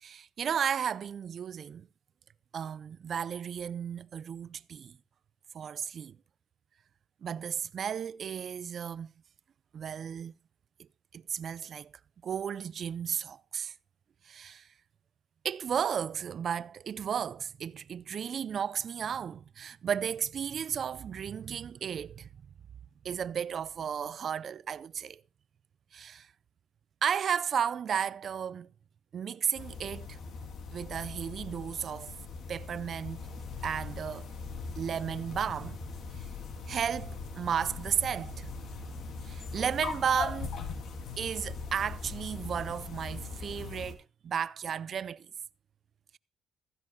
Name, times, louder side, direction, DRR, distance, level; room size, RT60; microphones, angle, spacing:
voice 1, 0.0-1.9 2.5-5.0 5.5-6.2 7.2-9.1 9.7-10.3 11.1-11.9 12.2-13.7 14.2-14.7 15.4-22.3 23.0-25.2 25.9-26.3 27.0-28.7 29.1-30.2 30.7-32.1 32.5-33.3 33.6-34.3 34.8-35.8 36.7-38.5 39.2-40.6 41.2-45.3, right 8 dB, 55° right, 0.5 m, -34 dB
sound 1, 29.5-43.9, left 4 dB, 65° left, 2.8 m, -40 dB
15.5 x 15.0 x 2.3 m
cardioid pair, 90°, 0 cm